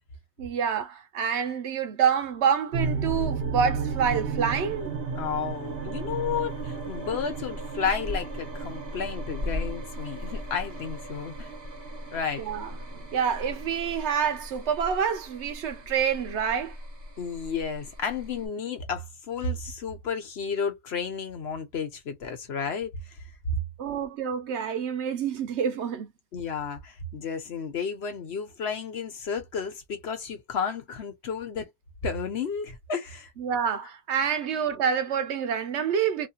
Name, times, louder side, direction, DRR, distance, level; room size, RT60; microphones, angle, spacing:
voice 1, 0.4-4.9 12.4-12.7 13.1-16.8 23.8-26.1 33.4-36.3, right 7 dB, 75° right, 0.9 m, -27 dB
sound 1, 2.7-18.5, right 4 dB, 60° right, 1.4 m, -35 dB
Purr / Meow, 2.8-11.6, left 1 dB, 40° right, 1.5 m, -39 dB
voice 2, 5.2-11.5 12.1-12.4 17.2-22.9 26.3-31.7 32.0-33.3 34.7-34.8, left 6 dB, 70° left, 1.2 m, -32 dB
3.2 x 2.2 x 2.8 m
omnidirectional pair, 1.2 m